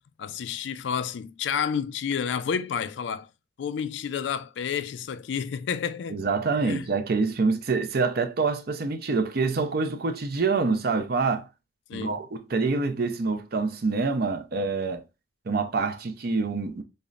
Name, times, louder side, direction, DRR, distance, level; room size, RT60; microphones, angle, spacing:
voice 1, 0.2-3.3 3.6-6.2 6.6-6.9 11.9-12.2, left 7 dB, 70° left, 0.3 m, -30 dB
voice 2, 6.1-11.5 11.9-15.0 15.5-16.8, right 4 dB, 55° right, 0.5 m, -26 dB
5.3 x 2.1 x 2.3 m
head